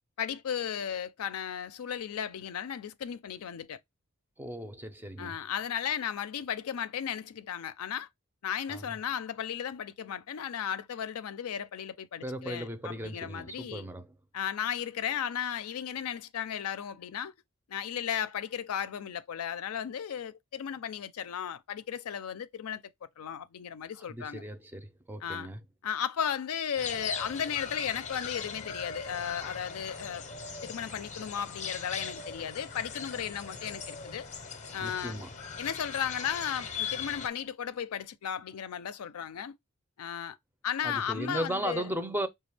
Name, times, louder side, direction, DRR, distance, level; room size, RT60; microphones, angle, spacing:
voice 1, 0.2-3.8 5.2-8.1 8.4-13.9 14.3-17.3 17.7-22.8 23.2-24.4 25.2-25.5 25.8-30.2 30.6-34.3 34.7-35.2 35.6-39.5 40.0-40.4 40.6-41.9, left 8 dB, 85° left, 0.4 m, -35 dB
voice 2, 4.4-5.3 8.7-8.9 12.2-14.1 23.9-25.6 34.8-35.3 40.8-42.3, equal, 10° right, 0.4 m, -36 dB
sound 1, 26.8-37.3, left 5 dB, 35° left, 0.6 m, -40 dB
5.0 x 2.3 x 3.3 m
head